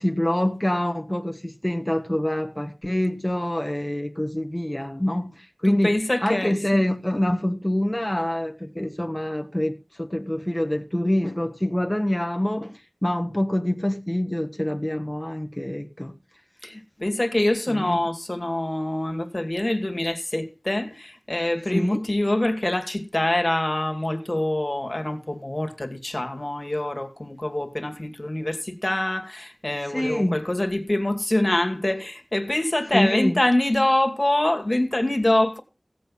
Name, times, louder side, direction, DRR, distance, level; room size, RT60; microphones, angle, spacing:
voice 1, 0.0-16.1 17.7-18.0 21.7-22.0 29.8-30.4 32.9-33.4, left 1 dB, 15° left, 1.4 m, -26 dB
voice 2, 5.7-6.8 7.1-7.2 16.6-35.6, left 1 dB, 35° left, 2.2 m, -25 dB
16.5 x 8.1 x 5.5 m
wide cardioid pair, 45°, 0 cm